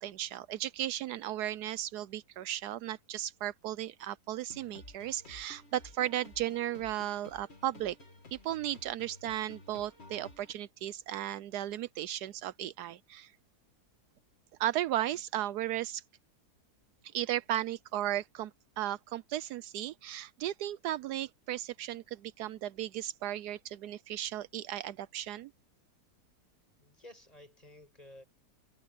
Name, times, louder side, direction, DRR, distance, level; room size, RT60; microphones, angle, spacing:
voice 1, 0.0-8.0 8.3-13.3 14.6-16.0 17.1-18.5 18.8-25.5, right 13 dB, 80° right, 1.1 m, -35 dB
sound 1, 4.5-10.5, left 2 dB, 40° left, 2.6 m, -53 dB
voice 2, 26.8-28.2, left 1 dB, 25° left, 7.4 m, -53 dB
omnidirectional pair, 1.7 m